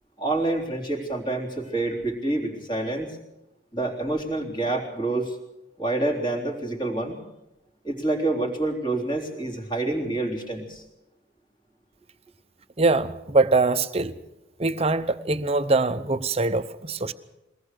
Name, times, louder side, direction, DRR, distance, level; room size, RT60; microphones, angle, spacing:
voice 1, 0.2-3.2 3.7-5.4 5.8-7.2 7.8-10.8, right 2 dB, 25° left, 3.7 m, -27 dB
voice 2, 12.8-14.1 14.6-17.1, right 3 dB, 30° right, 0.8 m, -23 dB
22.5 x 18.5 x 6.7 m
head